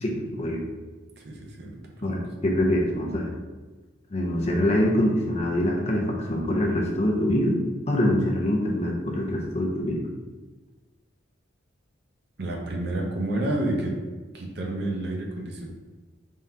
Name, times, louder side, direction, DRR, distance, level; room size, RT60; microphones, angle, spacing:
voice 1, 0.0-0.6 2.0-3.3 4.1-10.1, left 1 dB, 30° left, -1 dB, 0.5 m, -24 dB
voice 2, 1.2-1.8 12.4-14.0 14.3-15.7, right 1 dB, 55° right, 0 dB, 0.6 m, -29 dB
3.6 x 2.8 x 3.3 m, 1.3 s
head